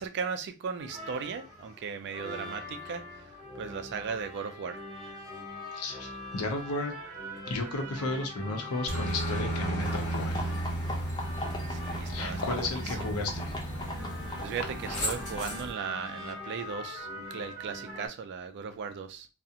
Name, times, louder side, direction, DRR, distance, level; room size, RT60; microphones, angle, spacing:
voice 1, 0.0-4.8 11.7-12.7 14.4-19.3, right 6 dB, 50° right, 0.3 m, -37 dB
sound 1, 0.8-18.1, left 1 dB, 15° right, 1.2 m, -43 dB
voice 2, 5.7-6.9 7.5-10.4 12.1-13.6 14.9-15.2, left 2 dB, 80° left, 0.6 m, -34 dB
Aircraft, 8.9-15.7, right 1 dB, 35° left, 1.1 m, -34 dB
sound 2, 9.8-15.5, left 2 dB, 20° left, 0.4 m, -40 dB
2.4 x 2.0 x 2.7 m
head